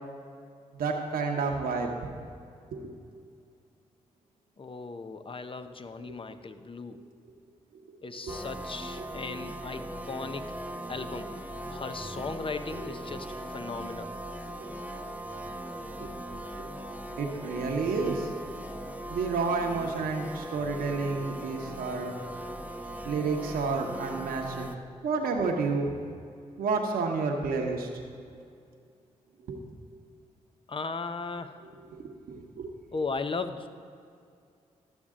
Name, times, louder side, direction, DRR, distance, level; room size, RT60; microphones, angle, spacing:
voice 1, 0.7-1.9 2.7-2.9 6.0-6.4 6.9-7.0 8.1-8.4 12.2-12.3 12.7-12.9 14.6-14.7 16.0-16.1 16.6-16.7 17.1-18.3 19.1-22.1 23.0-24.7 25.0-25.9 26.6-27.9 29.5-29.6 32.0-32.7, right 4 dB, 70° right, 1 dB, 1.0 m, -30 dB
voice 2, 4.6-7.0 8.0-10.5 10.9-11.3 11.7-14.1 30.7-31.5 32.9-33.7, left 4 dB, 35° left, 9 dB, 0.7 m, -37 dB
sound 1, 8.3-24.8, right 1 dB, 10° right, 0.8 m, -39 dB
13.0 x 7.2 x 3.7 m, 2.4 s
supercardioid pair, 40°, 16 cm